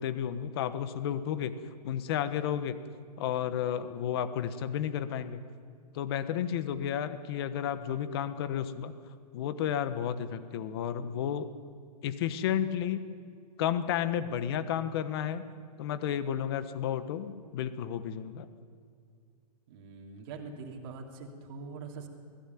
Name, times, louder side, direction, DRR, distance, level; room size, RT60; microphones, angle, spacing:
voice 1, 0.0-1.5 1.8-2.8 3.2-5.4 5.9-8.9 9.3-11.5 12.0-13.1 13.6-15.5 15.8-18.5, left 9 dB, 35° left, 12 dB, 1.2 m, -32 dB
voice 2, 19.7-22.1, right 4 dB, 35° right, 0 dB, 2.8 m, -43 dB
20.0 x 16.0 x 9.3 m, 2.2 s
hypercardioid pair, 165°, 21 cm